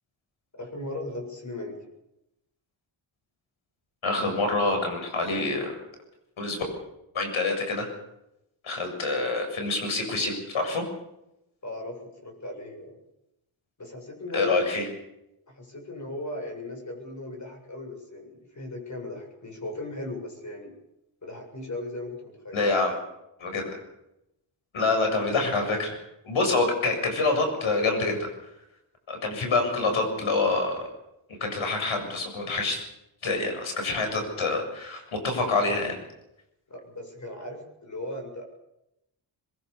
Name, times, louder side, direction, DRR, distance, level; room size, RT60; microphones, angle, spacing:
voice 1, 0.5-1.8 11.6-13.0 13.8-14.6 15.5-20.7 21.2-22.6 36.7-38.4, left 2 dB, 35° left, 3 dB, 7.6 m, -37 dB
voice 2, 4.0-5.8 6.4-6.6 7.1-7.9 8.6-10.8 14.3-14.8 22.5-22.9 23.4-23.6 24.7-25.9 26.2-28.3 29.1-30.8 31.4-32.8 33.2-36.0, left 3 dB, 70° left, 4 dB, 7.4 m, -26 dB
22.0 x 22.0 x 7.1 m, 0.87 s
wide cardioid pair, 100°, 50 cm